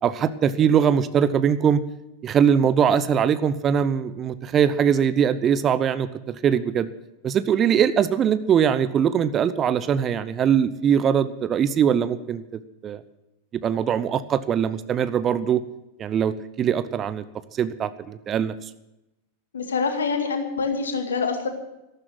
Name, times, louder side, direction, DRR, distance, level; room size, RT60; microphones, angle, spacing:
voice 1, 0.0-1.8 2.2-6.9 7.2-12.4 12.8-13.0 13.6-15.6 16.0-17.2 17.6-18.5, right 8 dB, 25° right, 14 dB, 0.8 m, -21 dB
voice 2, 19.5-21.5, left 5 dB, 70° left, 6 dB, 2.2 m, -25 dB
14.0 x 12.5 x 6.2 m, 0.92 s
figure-of-eight pair, 90°, 0 cm